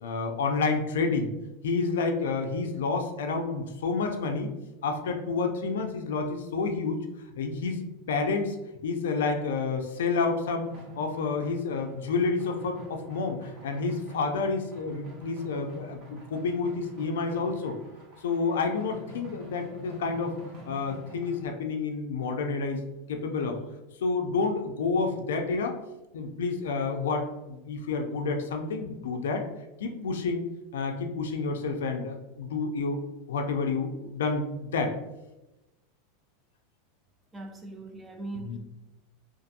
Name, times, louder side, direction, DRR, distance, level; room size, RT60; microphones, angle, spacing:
voice 1, 0.0-1.3 1.6-4.5 4.8-7.1 7.4-8.6 8.8-10.7 11.0-17.8 18.2-20.4 20.7-22.8 23.1-23.6 24.0-25.8 26.1-29.5 29.8-30.5 30.7-33.0 33.3-35.0 38.4-38.6, left 4 dB, 85° left, 4 dB, 0.3 m, -29 dB
sound 1, 10.6-21.5, left 1 dB, 45° right, 0.8 m, -46 dB
voice 2, 37.3-38.6, right 2 dB, 15° right, 3 dB, 0.5 m, -40 dB
2.6 x 2.5 x 2.5 m, 0.99 s
supercardioid pair, 120°, 0 cm